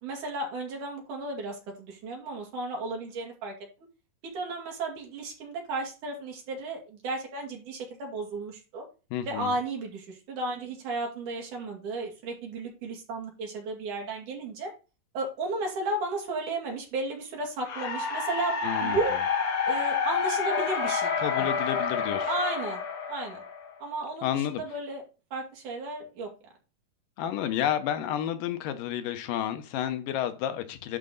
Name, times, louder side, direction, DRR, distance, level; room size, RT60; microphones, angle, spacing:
voice 1, 0.0-3.5 4.2-8.9 9.3-14.7 15.1-19.2 19.7-21.5 22.3-22.8 23.1-23.4 23.8-25.0 25.3-26.3, right 2 dB, 70° right, 3.9 m, -34 dB
voice 2, 9.1-9.6 18.6-19.2 21.2-22.3 24.2-24.6 27.2-31.0, left 10 dB, 90° left, 2.6 m, -31 dB
sound 1, 17.7-23.8, left 5 dB, 55° left, 2.4 m, -29 dB
11.5 x 4.2 x 3.9 m
omnidirectional pair, 3.8 m